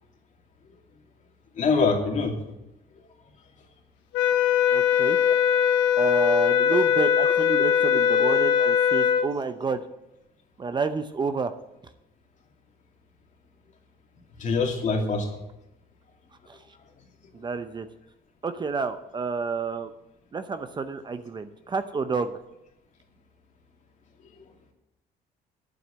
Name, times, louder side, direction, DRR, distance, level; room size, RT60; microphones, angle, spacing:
voice 1, 1.6-2.3 5.2-5.3 6.6-6.7 14.4-15.3, left 4 dB, 45° left, 1 dB, 2.6 m, -24 dB
sound 1, 4.1-9.3, left 8 dB, 85° left, 1.3 m, -21 dB
voice 2, 4.7-5.2 6.0-9.8 10.6-11.5 16.5-16.6 17.3-17.9 18.4-19.9 20.3-22.3, right 4 dB, 25° right, 9 dB, 0.7 m, -29 dB
9.2 x 7.8 x 7.5 m, 0.89 s
cardioid pair, 110°, 17 cm